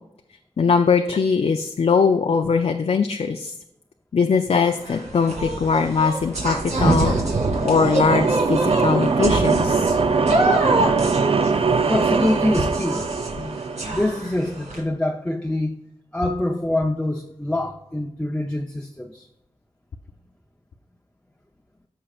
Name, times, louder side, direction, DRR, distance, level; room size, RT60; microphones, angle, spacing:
voice 1, 0.6-3.5 4.1-7.2 7.6-9.9, left 5 dB, 60° left, 5 dB, 0.5 m, -21 dB
sound 1, 4.7-14.8, right 2 dB, 75° right, 2.3 m, -26 dB
sound 2, 6.3-14.2, right 4 dB, 55° right, 0.5 m, -22 dB
sound 3, 7.3-12.5, right 1 dB, 90° right, 2.6 m, -40 dB
voice 2, 11.9-13.0 13.3-13.6 13.9-15.7 16.1-19.3, left 1 dB, 10° left, 1 dB, 0.6 m, -25 dB
14.0 x 5.6 x 2.4 m, 0.84 s
wide cardioid pair, 110°, 12 cm